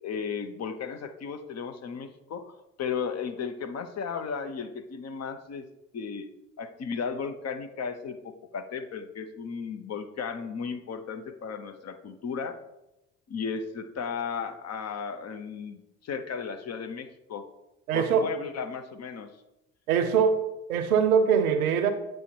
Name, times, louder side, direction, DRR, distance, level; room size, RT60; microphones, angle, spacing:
voice 1, 0.0-2.5 2.8-5.7 5.9-6.3 6.6-12.6 13.3-17.4 17.9-19.3, left 6 dB, 40° left, 8 dB, 0.7 m, -35 dB
voice 2, 17.9-18.3 19.9-21.9, right 7 dB, 85° right, 9 dB, 0.6 m, -23 dB
7.9 x 3.2 x 4.5 m, 0.92 s
hypercardioid pair, 55°, 42 cm